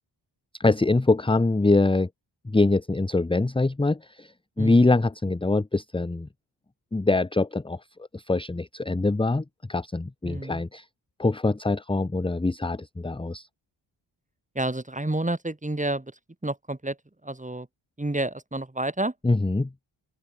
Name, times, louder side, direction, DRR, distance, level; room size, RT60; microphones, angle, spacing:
voice 1, 0.6-2.1 2.4-4.3 4.6-6.3 6.9-7.8 8.1-10.8 11.2-13.5 19.2-19.7, left 2 dB, 10° left, 0.7 m, -23 dB
voice 2, 4.6-4.9 10.2-10.6 14.6-17.0 17.2-17.7 18.0-19.1, right 2 dB, 15° right, 3.7 m, -30 dB
open air
cardioid pair, 70°, 48 cm